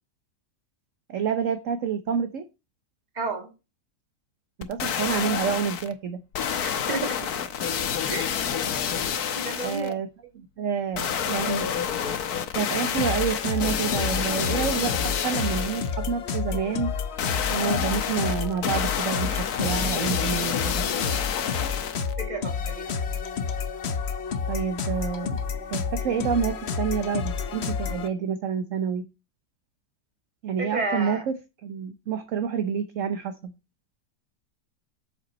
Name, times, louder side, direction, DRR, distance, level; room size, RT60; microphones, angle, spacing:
voice 1, 1.1-2.4 4.6-6.2 6.7-6.9 8.2-8.3 9.6-10.1 10.3-11.7 12.5-14.9 15.2-16.9 17.5-20.9 24.5-25.4 25.7-29.0 30.4-31.3 31.6-33.5, right 7 dB, 55° right, 1.1 m, -28 dB
voice 2, 3.2-3.5 6.6-7.2 8.1-8.3 9.4-10.0 22.2-22.9 30.6-31.2, right 2 dB, 25° right, 1.8 m, -31 dB
sound 1, 4.6-5.9 6.3-9.9 10.9-15.9 17.2-22.1 22.6-22.7, left 8 dB, 70° left, 1.4 m, -28 dB
sound 2, 13.0-28.1, left 6 dB, 50° left, 0.9 m, -30 dB
8.0 x 6.9 x 4.2 m
omnidirectional pair, 1.8 m